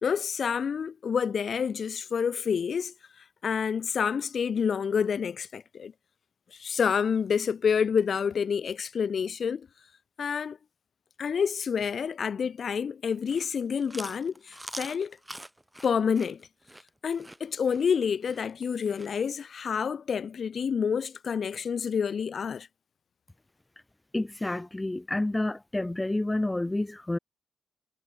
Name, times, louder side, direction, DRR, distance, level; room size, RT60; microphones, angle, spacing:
voice 1, 0.0-2.9 3.4-5.9 6.6-9.7 10.2-10.6 11.2-15.2 15.8-16.4 17.0-22.7, left 6 dB, 55° left, 1.3 m, -28 dB
Chewing mastication, 13.1-19.1, right 1 dB, 10° right, 5.3 m, -44 dB
voice 2, 24.1-27.2, left 2 dB, 15° left, 0.5 m, -29 dB
cardioid pair, 115°, 0 cm